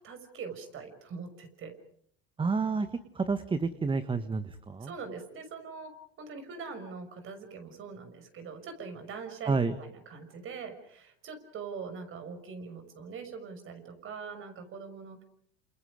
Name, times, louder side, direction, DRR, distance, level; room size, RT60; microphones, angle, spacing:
voice 1, 0.0-1.7 4.8-15.2, right 5 dB, 40° right, 8 dB, 6.2 m, -43 dB
voice 2, 2.4-2.9 3.1-4.9 9.4-9.7, right 4 dB, 15° right, 11 dB, 1.4 m, -29 dB
29.5 x 28.0 x 5.1 m, 0.66 s
hypercardioid pair, 100°, 31 cm